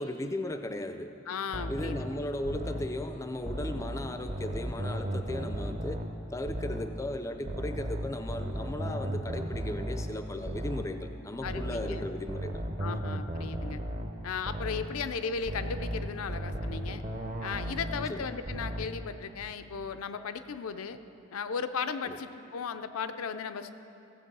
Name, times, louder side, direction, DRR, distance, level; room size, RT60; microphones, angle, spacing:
voice 1, 0.0-1.1 1.7-6.0 6.3-12.6 12.9-13.0 18.1-18.3 22.1-22.2, left 1 dB, 15° left, 7 dB, 0.4 m, -36 dB
voice 2, 1.3-2.0 11.4-12.0 12.8-13.8 14.2-17.0 17.4-21.0 21.3-23.7, left 6 dB, 80° left, 10 dB, 0.5 m, -36 dB
sound 1, 1.5-3.0 3.5-6.2 6.5-7.0 7.5-11.0 11.5-14.2 14.5-15.0 15.5-18.2 18.5-19.0, equal, 35° right, 0.7 m, -35 dB
15.5 x 7.9 x 5.4 m, 2.9 s
head